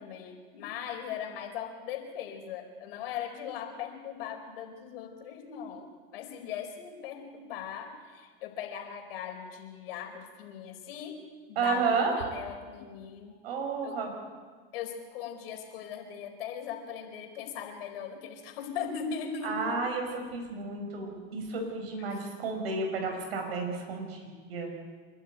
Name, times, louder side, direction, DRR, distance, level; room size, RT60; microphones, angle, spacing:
voice 1, 0.0-11.2 11.5-13.4 13.8-14.0 14.7-19.8 22.0-22.1, left 7 dB, 75° left, 4 dB, 4.8 m, -39 dB
voice 2, 11.6-12.1 13.4-14.1 19.4-20.1 20.3-24.7, right 4 dB, 80° right, 2 dB, 5.5 m, -31 dB
28.0 x 12.0 x 9.2 m, 1.5 s
hypercardioid pair, 105°, 30 cm